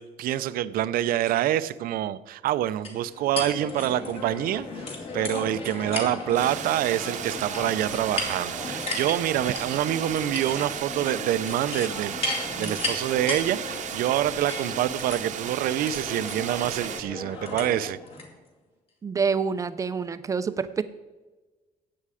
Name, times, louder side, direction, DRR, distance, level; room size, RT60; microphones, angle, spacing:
voice 1, 0.0-18.0, right 12 dB, 75° right, 15 dB, 0.6 m, -26 dB
sound 1, 2.8-18.3, left 2 dB, 40° left, 2.3 m, -35 dB
sound 2, 6.3-17.0, right 9 dB, 55° right, 0.9 m, -35 dB
voice 2, 19.0-20.8, right 5 dB, 20° right, 12 dB, 0.5 m, -27 dB
14.0 x 8.7 x 4.9 m, 1.2 s
cardioid pair, 175°, 15 cm